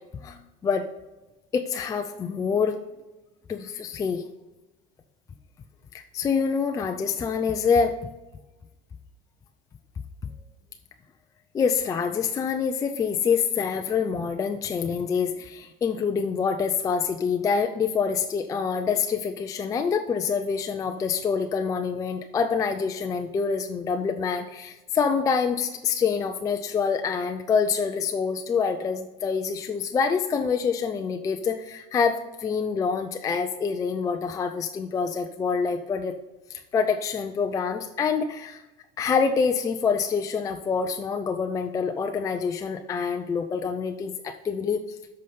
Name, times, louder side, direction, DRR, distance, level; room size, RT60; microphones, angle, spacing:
voice 1, 0.2-0.9 1.5-2.8 3.5-4.2 5.9-8.0 11.5-36.2 36.5-38.6 39.0-44.8, left 6 dB, 20° left, 5 dB, 0.4 m, -26 dB
8.3 x 5.6 x 5.5 m, 1.1 s
cardioid pair, 150°, 19 cm